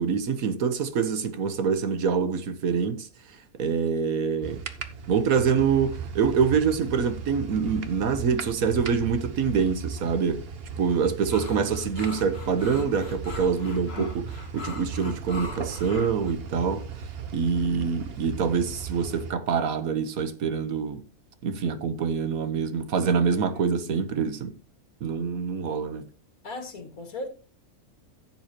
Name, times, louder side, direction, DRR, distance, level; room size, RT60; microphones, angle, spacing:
voice 1, 0.0-4.6 5.1-10.4 10.8-16.8 17.3-21.0 21.4-24.5 25.0-26.1, right 6 dB, 75° right, 1.5 m, -25 dB
sound 1, 4.4-19.3, right 5 dB, 45° right, 1.1 m, -37 dB
sound 2, 11.3-16.3, left 2 dB, 45° left, 2.1 m, -39 dB
voice 2, 26.4-27.3, left 2 dB, 80° left, 2.2 m, -36 dB
14.5 x 7.6 x 2.9 m
omnidirectional pair, 1.5 m